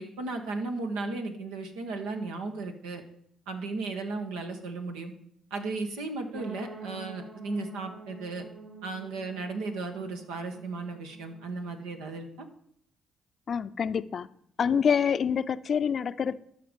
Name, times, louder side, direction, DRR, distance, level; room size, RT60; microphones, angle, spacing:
voice 1, 0.0-3.0 3.5-5.1 5.5-8.4 8.8-12.5, right 3 dB, 90° right, 4 dB, 1.3 m, -35 dB
sound 1, 6.3-12.2, right 4 dB, 70° right, 3.2 m, -47 dB
voice 2, 13.5-14.3 14.6-16.4, left 7 dB, 55° left, 14 dB, 0.5 m, -26 dB
12.5 x 5.9 x 5.2 m, 0.68 s
supercardioid pair, 60°, 0 cm